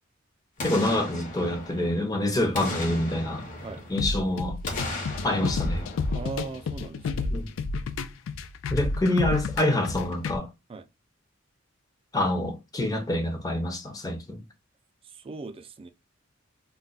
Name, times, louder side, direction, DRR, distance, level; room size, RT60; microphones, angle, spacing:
Boom, 0.6-2.1 2.5-4.2 4.6-6.9 7.3-7.4, left 1 dB, 40° left, 0.9 m, -36 dB
voice 1, 0.6-3.5 3.9-4.6 5.2-5.9 7.3-7.5 8.7-10.5 12.1-14.4, left 1 dB, 20° left, 0.7 m, -26 dB
sound 1, 4.0-10.4, left 4 dB, 70° left, 0.3 m, -30 dB
voice 2, 6.1-7.3 10.7-10.9 15.1-15.9, right 4 dB, 30° right, 0.3 m, -38 dB
2.3 x 2.2 x 3.9 m
head